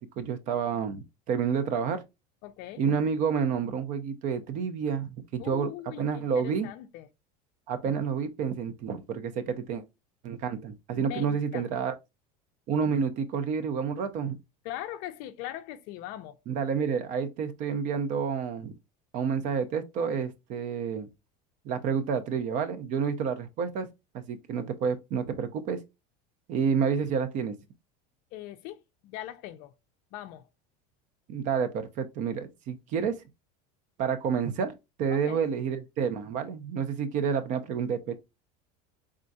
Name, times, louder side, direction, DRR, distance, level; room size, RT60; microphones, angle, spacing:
voice 1, 0.0-2.0 2.8-5.7 6.0-6.7 7.7-9.8 10.2-11.9 12.7-14.4 16.5-18.7 19.1-21.1 21.6-23.9 24.1-25.8 26.5-27.5 31.3-33.2 34.0-34.7 35.0-38.1, right 6 dB, 40° right, 0.6 m, -29 dB
voice 2, 2.4-2.8 5.4-7.1 11.0-11.7 14.6-16.4 28.3-29.7 30.1-30.5 35.1-35.4, left 13 dB, 45° left, 0.5 m, -40 dB
4.4 x 3.7 x 2.6 m
supercardioid pair, 165°, 20 cm